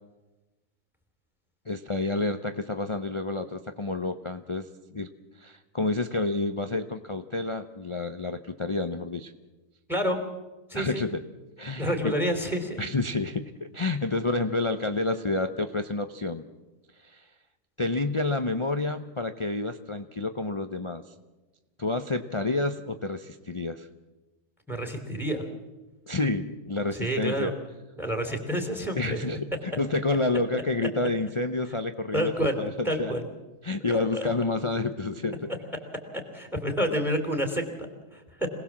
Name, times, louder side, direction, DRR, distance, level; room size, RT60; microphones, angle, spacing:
voice 1, 1.7-4.7 4.9-5.1 5.4-9.3 10.7-11.2 11.6-12.1 12.8-16.5 17.0-17.3 17.8-21.1 21.8-23.9 26.1-27.5 29.0-33.1 33.6-35.5, left 2 dB, 30° left, 8 dB, 0.6 m, -29 dB
voice 2, 10.7-11.0 11.8-12.8 24.7-25.4 27.0-27.5 28.0-29.2 32.1-32.6 32.8-33.2 34.1-34.3 36.3-38.5, equal, ahead, 5 dB, 3.0 m, -28 dB
26.0 x 19.0 x 7.3 m, 1.2 s
omnidirectional pair, 1.6 m